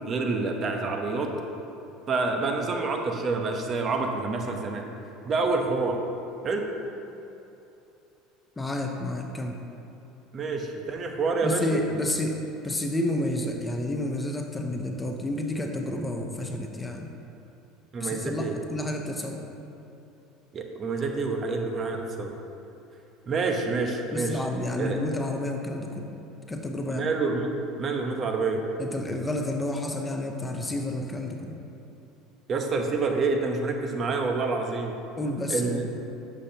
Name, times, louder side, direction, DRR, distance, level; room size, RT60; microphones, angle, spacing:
voice 1, 0.0-1.3 2.1-4.9 5.2-6.0 6.4-6.7 10.3-11.8 17.9-18.6 20.5-22.3 23.3-24.4 24.8-25.0 26.9-27.5 27.8-28.6 32.5-35.0 35.5-35.8, right 3 dB, 40° right, 3 dB, 0.9 m, -27 dB
voice 2, 8.6-9.6 11.4-12.4 12.6-17.1 18.0-19.4 24.1-26.2 26.5-27.1 28.8-31.6 32.7-32.8 35.2-35.9, left 1 dB, 15° left, 3 dB, 0.8 m, -30 dB
10.5 x 7.4 x 2.9 m, 2.8 s
supercardioid pair, 100°, 0 cm